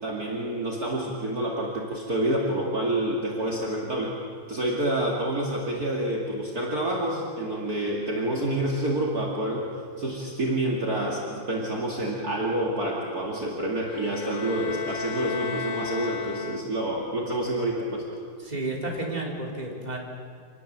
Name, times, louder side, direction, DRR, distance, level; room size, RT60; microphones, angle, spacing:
voice 1, 0.0-4.1 4.5-9.7 10.0-18.0, right 1 dB, 45° right, -2 dB, 2.7 m, -28 dB
sound 1, 13.8-17.1, left 6 dB, 50° left, 0.5 m, -35 dB
voice 2, 18.4-20.0, right 2 dB, 20° right, -2 dB, 3.6 m, -31 dB
27.0 x 19.0 x 7.5 m, 2.2 s
omnidirectional pair, 2.3 m